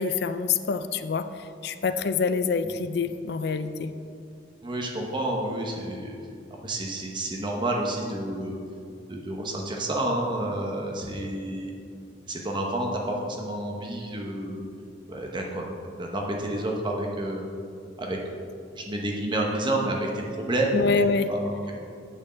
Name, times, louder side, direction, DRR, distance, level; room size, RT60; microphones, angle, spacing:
voice 1, 0.0-3.9 20.7-21.3, left 4 dB, 60° left, 11 dB, 0.4 m, -26 dB
voice 2, 4.6-6.2 6.6-8.6 9.1-11.7 12.3-13.0 13.3-14.6 15.1-17.5 18.0-18.2 18.7-21.6, right 1 dB, 25° right, 0 dB, 0.9 m, -29 dB
8.6 x 4.7 x 7.4 m, 2.4 s
head